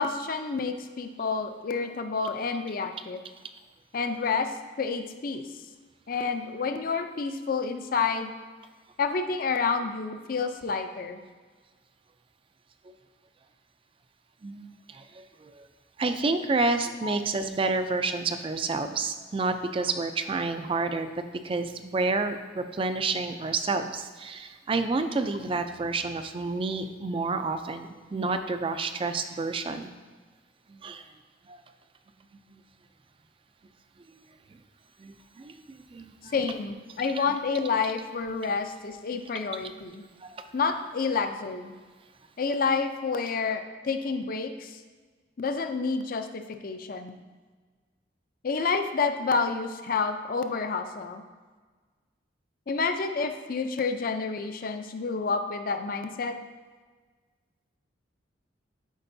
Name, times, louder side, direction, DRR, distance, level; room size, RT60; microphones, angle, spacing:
voice 1, 0.0-3.2 3.9-4.5 4.8-5.4 6.1-8.3 9.0-11.2 17.0-17.2 36.3-40.0 40.5-41.7 42.4-44.8 45.4-47.2 48.4-51.2 52.7-56.4, left 4 dB, 50° left, 7 dB, 0.5 m, -29 dB
voice 2, 14.4-15.0 15.4-15.5 16.0-21.1 21.4-29.9 30.7-31.0 31.5-31.6 35.0-35.5 35.9-36.3 37.2-37.3 40.3-40.4, right 3 dB, 30° right, 9 dB, 0.4 m, -29 dB
11.0 x 4.5 x 2.7 m, 1.4 s
head